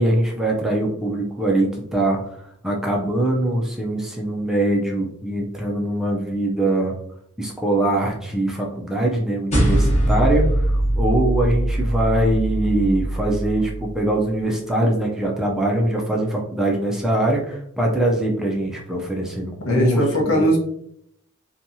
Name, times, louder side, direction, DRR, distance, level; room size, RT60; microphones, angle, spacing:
voice 1, 0.0-6.9 7.4-20.5, right 1 dB, ahead, -2 dB, 0.4 m, -22 dB
sound 1, 9.5-14.1, right 1 dB, 30° left, 0.8 m, -21 dB
voice 2, 19.6-20.6, right 1 dB, 75° left, 0 dB, 0.7 m, -19 dB
2.8 x 2.3 x 2.6 m, 0.71 s
head